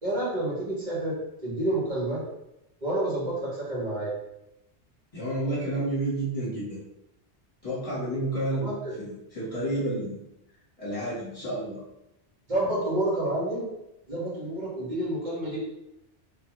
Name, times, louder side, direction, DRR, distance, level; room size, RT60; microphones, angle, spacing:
voice 1, 0.0-1.2 1.4-2.2 2.8-4.1 8.6-8.9 12.5-13.6 14.1-15.6, right 1 dB, 40° right, -8 dB, 1.7 m, -29 dB
voice 2, 5.1-6.8 7.6-10.2 10.8-11.8, right 1 dB, 30° left, -8 dB, 1.5 m, -30 dB
3.6 x 3.2 x 2.9 m, 0.87 s
omnidirectional pair, 1.2 m